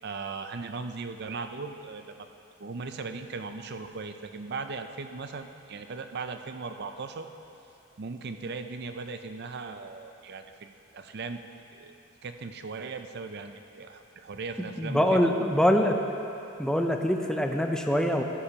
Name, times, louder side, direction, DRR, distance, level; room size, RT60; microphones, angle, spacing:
voice 1, 0.0-2.3 2.6-7.3 8.0-11.4 11.7-11.9 12.2-15.3, right 4 dB, 55° right, 7 dB, 0.5 m, -38 dB
voice 2, 14.8-16.0 16.6-18.2, equal, 5° left, 3 dB, 0.5 m, -24 dB
15.0 x 10.0 x 2.9 m, 2.8 s
head